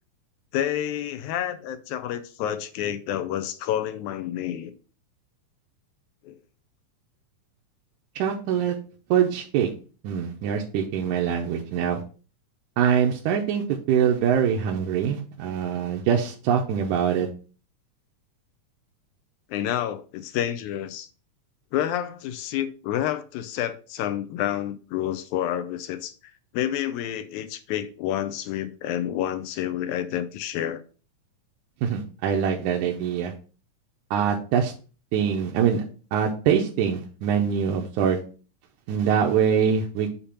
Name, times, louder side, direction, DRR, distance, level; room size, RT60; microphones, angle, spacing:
voice 1, 0.5-4.7 6.2-6.4 19.5-21.1 21.7-30.8, left 11 dB, 80° left, 1.8 m, -29 dB
voice 2, 8.2-8.8 9.1-9.7 10.0-12.0 12.8-17.3 31.8-33.3 34.1-34.7 35.1-35.8 36.1-38.2 38.9-40.2, right 8 dB, 80° right, 2.1 m, -23 dB
6.8 x 2.8 x 5.6 m
omnidirectional pair, 3.6 m